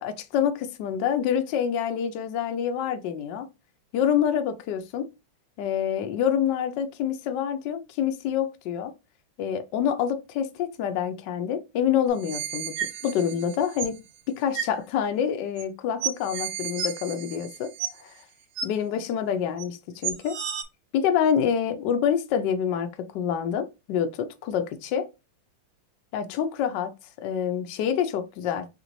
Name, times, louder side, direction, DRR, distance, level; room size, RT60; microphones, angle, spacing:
voice 1, 0.0-3.5 3.9-5.1 5.6-8.9 9.4-14.0 14.3-17.7 18.0-18.2 18.6-20.4 20.9-25.1 26.1-26.9 27.2-28.7, left 8 dB, 75° left, 1.2 m, -27 dB
sound 1, 12.1-14.0 14.5-14.7 15.6-15.7 16.0-18.2 18.6-18.7 19.6-19.7 20.0-20.6, right 8 dB, 85° right, 1.7 m, -32 dB
4.1 x 3.8 x 3.0 m
omnidirectional pair, 2.1 m